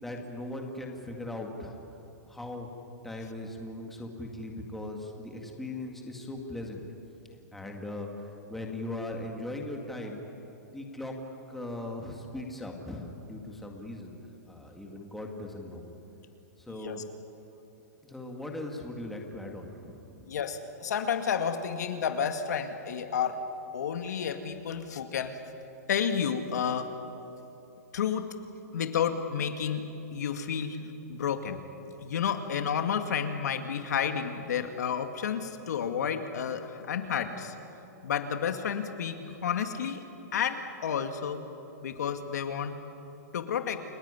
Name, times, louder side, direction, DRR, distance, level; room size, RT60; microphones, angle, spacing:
voice 1, 0.0-1.8 2.3-2.7 3.0-6.8 7.5-10.2 10.7-14.1 14.5-15.8 16.6-17.0 18.0-20.3, left 1 dB, ahead, 1 dB, 1.9 m, -39 dB
voice 2, 16.7-17.0 20.3-23.4 23.7-25.4 25.9-26.9 27.9-28.3 28.7-31.6 32.0-37.5 38.0-40.0 40.3-41.4 41.8-42.8 43.3-43.8, left 7 dB, 75° left, 7 dB, 2.2 m, -31 dB
29.5 x 18.0 x 9.8 m, 2.9 s
hypercardioid pair, 170°, 9 cm